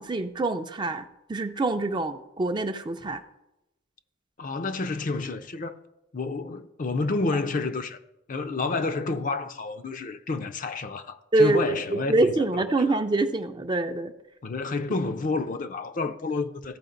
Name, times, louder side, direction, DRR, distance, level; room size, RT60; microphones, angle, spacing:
voice 1, 0.0-3.2 11.3-14.1, right 2 dB, 20° right, 0.4 m, -25 dB
voice 2, 4.4-5.8 6.1-8.0 8.3-13.0 14.4-16.8, left 3 dB, 40° left, 0.5 m, -30 dB
14.5 x 4.9 x 3.9 m
head